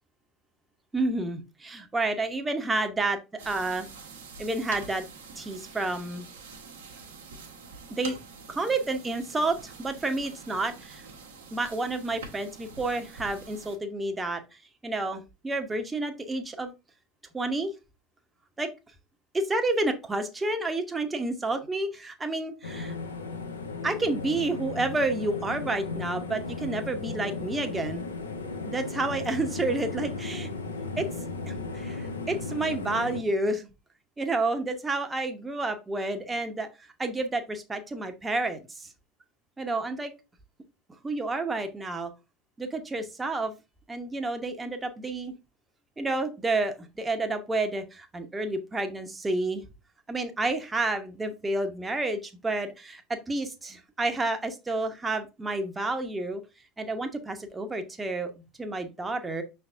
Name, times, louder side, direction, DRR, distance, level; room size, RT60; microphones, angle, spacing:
voice 1, 0.9-3.2 3.5-3.9 4.4-5.0 5.4-6.3 7.9-8.2 8.5-11.0 11.5-14.4 14.8-16.7 17.3-17.7 18.6-18.7 19.3-22.9 23.8-28.0 28.7-30.5 31.0-31.1 31.5-33.7 34.2-36.7 37.0-38.9 39.6-40.1 41.0-42.1 42.6-43.5 43.9-45.3 46.0-49.6 50.1-56.4 56.8-59.4, right 2 dB, 15° right, 6 dB, 0.8 m, -30 dB
sound 1, 3.4-13.8, right 4 dB, 70° right, 1.1 m, -46 dB
sound 2, 22.6-33.2, left 3 dB, 80° left, 0.8 m, -35 dB
5.6 x 3.5 x 2.5 m, 0.27 s
figure-of-eight pair, 75°, 0 cm